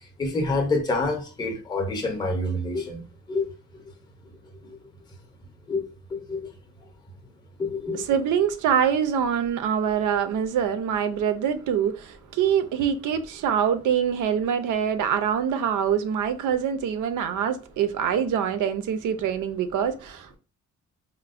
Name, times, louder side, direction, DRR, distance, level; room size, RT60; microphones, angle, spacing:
voice 1, 0.2-3.0 3.3-3.4 5.7-5.8 6.1-6.5 7.6-8.0, left 2 dB, 15° left, 0.5 m, -27 dB
voice 2, 7.9-20.4, right 8 dB, 90° right, 0.5 m, -25 dB
4.3 x 2.0 x 2.4 m
wide cardioid pair, 160°, 30 cm